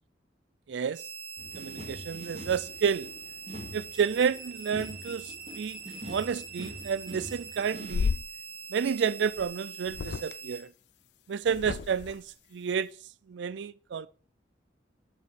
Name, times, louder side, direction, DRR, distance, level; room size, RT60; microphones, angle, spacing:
voice 1, 0.7-1.0 1.6-3.1 3.7-5.8 6.0-8.2 8.7-10.7 11.3-12.2 12.5-12.9 13.3-14.1, right 6 dB, 75° right, 0.4 m, -30 dB
sound 1, 0.9-10.6, right 5 dB, 55° right, 3.4 m, -43 dB
sound 2, 1.4-8.1, equal, 35° right, 2.6 m, -45 dB
sound 3, 7.9-8.3 9.4-9.5 9.8-10.3 11.5-12.2, left 5 dB, 65° left, 0.4 m, -32 dB
9.4 x 6.9 x 5.0 m
head